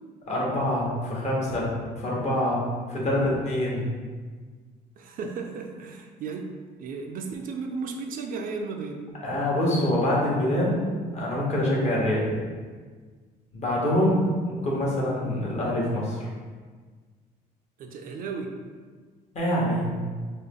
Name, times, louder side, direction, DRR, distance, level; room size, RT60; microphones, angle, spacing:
voice 1, 0.3-1.7 2.0-3.9 9.2-10.9 11.1-12.3 13.5-14.2 14.5-16.3 19.3-19.9, left 1 dB, 40° left, -4 dB, 1.0 m, -25 dB
voice 2, 5.0-6.4 6.8-9.0 14.0-14.1 17.8-18.5, right 4 dB, 55° right, 3 dB, 0.4 m, -34 dB
3.6 x 2.1 x 3.5 m, 1.5 s
cardioid pair, 110°, 17 cm